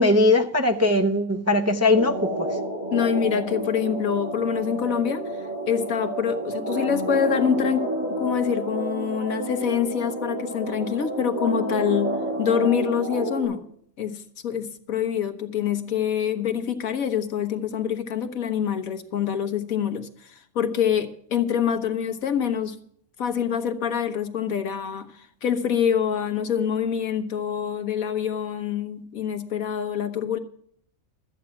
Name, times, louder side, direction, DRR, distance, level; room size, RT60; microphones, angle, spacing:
voice 1, 0.0-2.5, left 2 dB, 20° right, 0.4 m, -20 dB
sound 1, 1.9-13.5, right 1 dB, 35° right, 6.7 m, -30 dB
voice 2, 2.9-5.2 5.7-7.9 8.2-13.6 14.0-22.7 23.2-30.4, left 8 dB, 80° left, 1.6 m, -26 dB
13.5 x 8.8 x 5.8 m
omnidirectional pair, 1.4 m